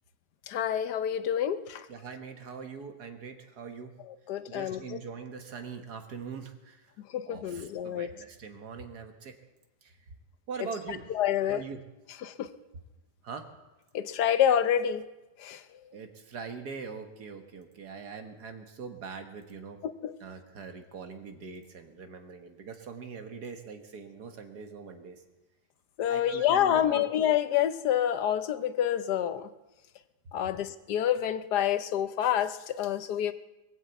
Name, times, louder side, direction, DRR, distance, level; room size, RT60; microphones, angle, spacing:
voice 1, 0.5-1.8 4.3-4.8 7.1-8.1 11.2-11.6 12.2-12.5 13.9-15.0 15.4-15.6 20.0-20.1 26.0-29.5 30.3-33.3, left 10 dB, 80° left, 12 dB, 1.3 m, -27 dB
voice 2, 1.9-3.9 4.5-6.9 7.3-9.3 9.8-10.0 10.5-11.2 11.4-11.8 13.2-13.5 15.9-19.8 20.2-25.2 26.1-27.1, right 5 dB, 70° right, 5 dB, 1.9 m, -42 dB
21.5 x 7.3 x 8.1 m, 1.1 s
omnidirectional pair, 1.8 m